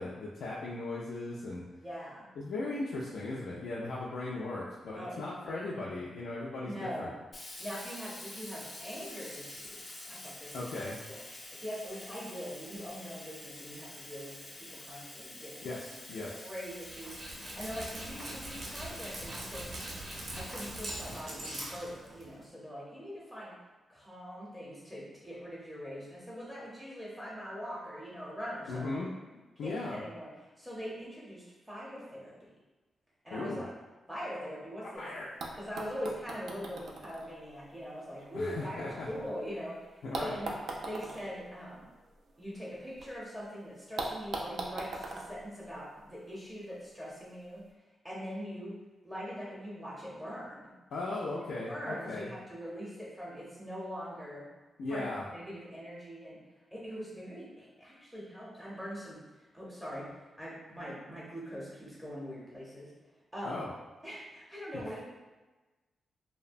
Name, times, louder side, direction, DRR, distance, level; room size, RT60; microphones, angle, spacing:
voice 1, 0.0-1.7 2.4-7.1 10.5-11.0 15.6-16.4 28.7-29.1 29.6-30.0 33.3-33.6 35.0-35.3 38.3-39.1 40.0-40.4 50.9-52.3 54.8-55.2 63.4-63.7 64.9-65.0, left 2 dB, 85° left, -6 dB, 0.3 m, -37 dB
voice 2, 1.8-2.3 4.9-5.9 6.6-7.1 7.6-10.7 11.1-11.2 11.5-14.3 14.7-15.5 16.3-19.7 20.3-23.5 23.9-29.0 29.6-30.3 30.6-32.5 33.2-33.7 34.1-35.0 35.5-40.5 40.8-41.9 42.4-47.6 48.0-48.7 49.0-50.7 51.7-54.5 54.9-56.4 56.7-59.2 59.5-62.9 63.3-63.6 64.0-65.0, equal, 10° right, -6 dB, 0.6 m, -42 dB
Sink (filling or washing), 7.3-22.1, left 1 dB, 30° left, 0.5 m, -48 dB
Dog, 16.7-22.5, right 1 dB, 50° right, 0.6 m, -42 dB
sound 1, 35.0-35.1 35.4-39.5 40.1-43.1 43.4-43.5 44.0-46.4 47.4-47.5, right 2 dB, 85° right, 0.3 m, -42 dB
2.7 x 2.1 x 2.5 m, 1.2 s
wide cardioid pair, 130°, 0 cm